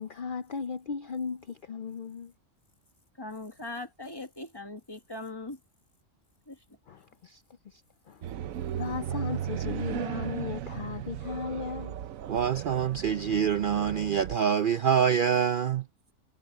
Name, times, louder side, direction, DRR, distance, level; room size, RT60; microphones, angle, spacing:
voice 1, 0.0-2.3 6.9-8.2 8.7-12.0, left 6 dB, 50° left, 0.7 m, -37 dB
voice 2, 3.2-5.6 6.5-6.6, left 2 dB, 20° left, 1.8 m, -40 dB
sound 1, 8.2-14.4, right 10 dB, 85° right, 1.1 m, -36 dB
voice 3, 12.3-15.9, right 7 dB, 55° right, 0.6 m, -25 dB
omnidirectional pair, 1.4 m